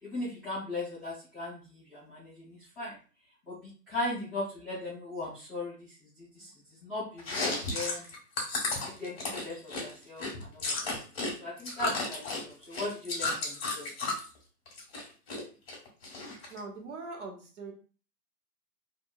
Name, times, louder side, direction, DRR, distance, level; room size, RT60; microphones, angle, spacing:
voice 1, 0.0-3.0 3.5-3.6 3.9-6.5 6.8-7.4 7.7-8.0 8.8-13.9, left 2 dB, ahead, -17 dB, 0.6 m, -38 dB
voice 2, 6.4-6.8 16.5-17.7, right 3 dB, 50° right, 1 dB, 0.9 m, -43 dB
Chewing mastication, 7.2-11.3 11.6-14.3 14.7-15.4 15.7-16.6, left 3 dB, 40° left, 1.4 m, -33 dB
2.7 x 2.6 x 2.3 m, 0.38 s
hypercardioid pair, 140°, 48 cm